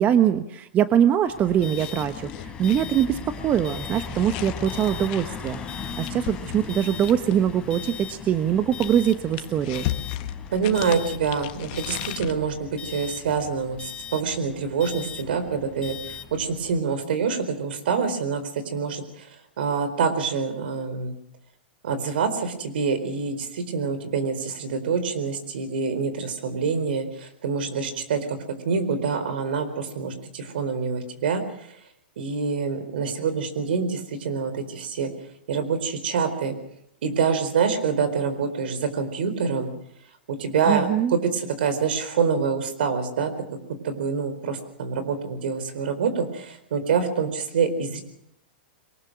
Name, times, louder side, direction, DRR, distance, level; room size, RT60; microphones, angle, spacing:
voice 1, 0.0-9.9 40.7-41.1, right 9 dB, 30° right, 11 dB, 1.1 m, -23 dB
sound 1, 1.3-16.8, left 6 dB, 20° left, 3.9 m, -38 dB
sound 2, 1.8-7.5 8.4-12.3, left 14 dB, 50° left, 1.5 m, -37 dB
voice 2, 10.5-19.3 19.6-21.2 21.8-28.4 28.6-31.7 32.2-35.1 35.5-36.6 37.0-39.7 40.3-43.3 43.8-48.0, right 5 dB, 70° right, 10 dB, 4.4 m, -26 dB
23.0 x 19.5 x 6.3 m, 0.76 s
hypercardioid pair, 120°, 6 cm